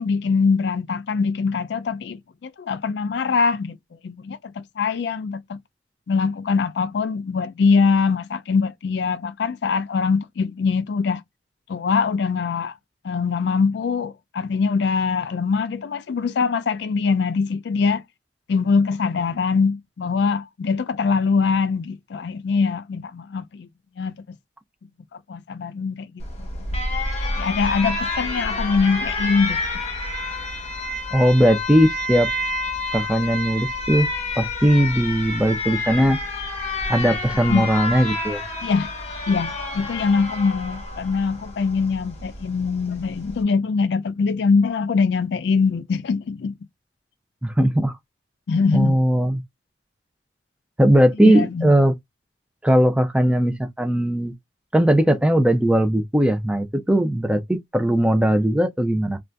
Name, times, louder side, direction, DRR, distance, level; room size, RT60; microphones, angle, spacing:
voice 1, 0.0-3.8 4.0-5.6 6.1-11.2 11.7-12.8 13.0-18.0 18.5-23.7 24.0-24.4 25.3-26.2 27.4-29.8 37.5-37.7 38.6-38.9 39.3-46.6 48.5-49.0 51.2-51.7, left 5 dB, 60° left, 0.3 m, -23 dB
Alarm, 26.2-43.4, left 2 dB, 35° left, 1.0 m, -29 dB
voice 2, 31.1-32.3 32.9-34.1 34.4-36.2 36.9-38.4 47.4-47.9 48.7-49.4 50.8-51.9 52.6-54.3 54.7-59.2, right 1 dB, 5° right, 0.4 m, -19 dB
2.7 x 2.3 x 3.3 m
head